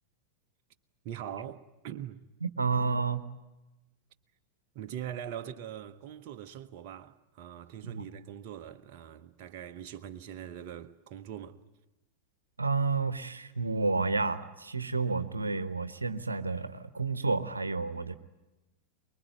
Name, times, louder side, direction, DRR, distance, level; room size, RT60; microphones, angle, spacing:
voice 1, 1.0-2.3 4.7-11.6, right 10 dB, 45° right, 1.0 m, -42 dB
voice 2, 2.4-3.3 7.8-8.0 12.6-18.2, right 4 dB, 80° right, 1.1 m, -30 dB
24.5 x 22.0 x 9.5 m
figure-of-eight pair, 90°, 0 cm